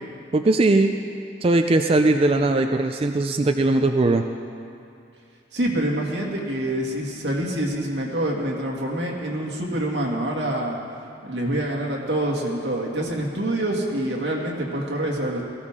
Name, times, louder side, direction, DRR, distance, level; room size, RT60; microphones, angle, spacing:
voice 1, 0.3-0.9 1.4-4.2, right 2 dB, 30° right, 5 dB, 0.5 m, -19 dB
voice 2, 5.5-10.8 11.2-15.4, right 1 dB, 90° right, -2 dB, 2.4 m, -26 dB
18.0 x 15.0 x 3.7 m, 2.5 s
head